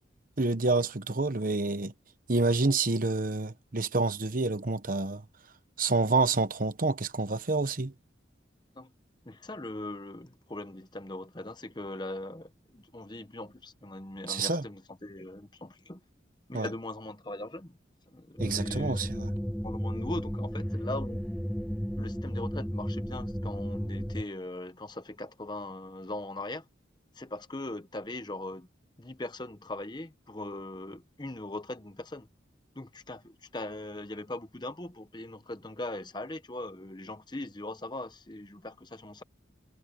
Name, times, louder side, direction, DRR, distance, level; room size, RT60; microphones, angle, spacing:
voice 1, 0.4-1.9 2.3-5.2 5.8-7.9 14.3-14.6 16.5-16.7 18.4-19.3, right 3 dB, 45° right, 1.0 m, -28 dB
voice 2, 9.2-16.0 16.5-17.7 18.1-19.1 19.6-21.2 22.0-26.7 27.1-28.7 29.0-32.3 32.7-39.2, left 2 dB, 25° left, 1.0 m, -40 dB
sound 1, 18.4-24.2, equal, ahead, 0.5 m, -33 dB
head